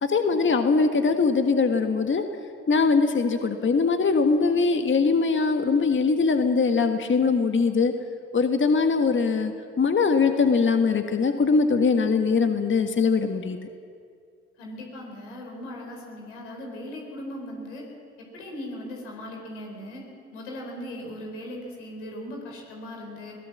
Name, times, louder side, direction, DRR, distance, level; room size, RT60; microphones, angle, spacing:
voice 1, 0.0-2.2 2.7-7.9 8.3-13.6, left 4 dB, 35° left, 6 dB, 1.6 m, -22 dB
voice 2, 14.6-17.9 18.2-20.0 20.3-23.4, left 1 dB, 85° left, 0 dB, 4.5 m, -38 dB
22.0 x 17.5 x 7.4 m, 2.3 s
hypercardioid pair, 50°, 35 cm